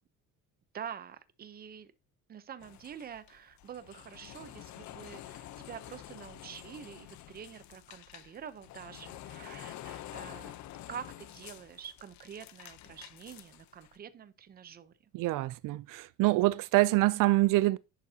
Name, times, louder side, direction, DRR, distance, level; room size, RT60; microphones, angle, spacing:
voice 1, 0.7-1.9 2.3-10.5 10.9-14.9, right 8 dB, 30° right, 0.7 m, -46 dB
sound 1, 2.6-14.0, left 13 dB, 65° left, 0.7 m, -48 dB
voice 2, 15.1-17.8, right 19 dB, 80° right, 0.5 m, -25 dB
11.0 x 8.2 x 2.8 m
cardioid pair, 180°, 32 cm